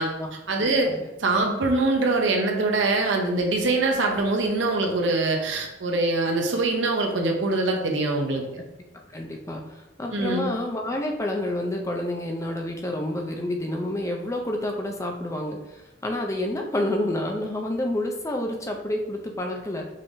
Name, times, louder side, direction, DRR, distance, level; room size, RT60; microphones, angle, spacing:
voice 1, 0.5-0.9 1.2-8.4 10.1-10.5, right 2 dB, 75° right, 2 dB, 0.8 m, -23 dB
voice 2, 9.1-15.6 16.0-19.9, left 1 dB, 15° left, 2 dB, 0.5 m, -29 dB
5.4 x 3.4 x 2.6 m, 0.96 s
head